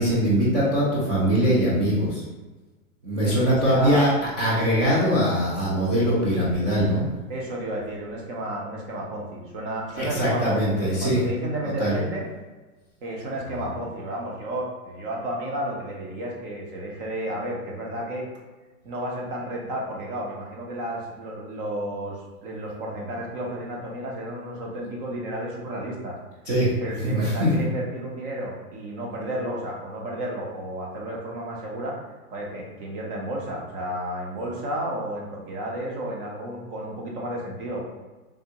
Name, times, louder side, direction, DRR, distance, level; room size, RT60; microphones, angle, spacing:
voice 1, 0.0-2.2 3.0-7.0 9.9-11.2 11.8-12.0 13.5-13.7 26.5-26.7 27.0-27.5, equal, 20° right, -9 dB, 0.5 m, -22 dB
voice 2, 3.2-4.0 7.3-12.3 13.0-18.3 18.8-26.2 26.8-32.0 32.3-37.8, right 1 dB, 40° right, -2 dB, 0.8 m, -32 dB
3.5 x 2.2 x 2.8 m, 1.2 s
hypercardioid pair, 145°, 44 cm